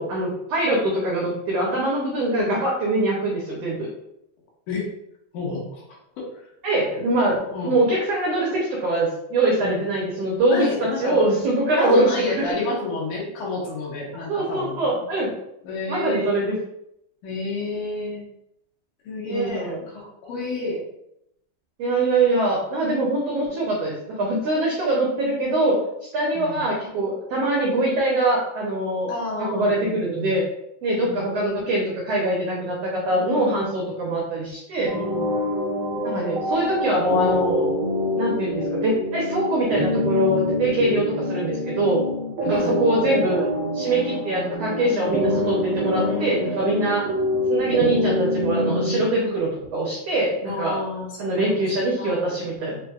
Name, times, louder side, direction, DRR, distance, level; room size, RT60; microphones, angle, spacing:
voice 1, 0.0-3.9 6.6-12.1 14.3-15.3 15.9-16.5 19.3-19.8 21.8-25.8 26.1-29.1 29.4-30.4 30.8-34.9 36.0-37.7 38.2-42.0 42.4-43.4 43.7-47.1 47.5-50.8 51.2-52.8, right 2 dB, 85° right, -3 dB, 1.4 m, -23 dB
voice 2, 2.3-2.6 4.7-4.9 5.3-6.5 7.4-7.8 9.6-9.8 10.5-11.3 11.7-15.0 15.6-16.3 17.2-18.2 19.0-20.9 26.3-26.7 29.1-30.4 31.1-31.3 33.1-33.7 34.8-35.3 42.5-42.8 44.8-45.4 46.0-46.5 50.5-52.2, left 3 dB, 75° left, -3 dB, 2.3 m, -30 dB
sound 1, 34.9-49.1, left 1 dB, 65° right, 1.3 m, -25 dB
5.8 x 2.5 x 2.4 m, 0.80 s
omnidirectional pair, 3.9 m